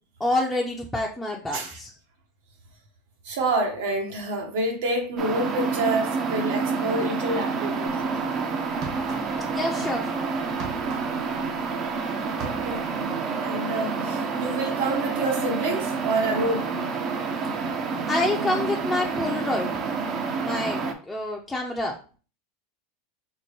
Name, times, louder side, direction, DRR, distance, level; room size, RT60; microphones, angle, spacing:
voice 1, 0.2-1.9 9.5-10.1 18.1-19.7 20.4-22.0, left 2 dB, 10° left, -1 dB, 0.5 m, -27 dB
voice 2, 3.2-8.2 12.2-12.8 13.4-16.7, right 2 dB, 75° right, 2 dB, 1.1 m, -28 dB
sound 1, 5.2-20.9, right 4 dB, 40° right, 0.5 m, -28 dB
sound 2, 8.8-9.6 9.9-12.0 12.2-13.0, right 4 dB, 55° right, 1.1 m, -39 dB
4.4 x 2.1 x 3.0 m, 0.37 s
supercardioid pair, 120°, 0 cm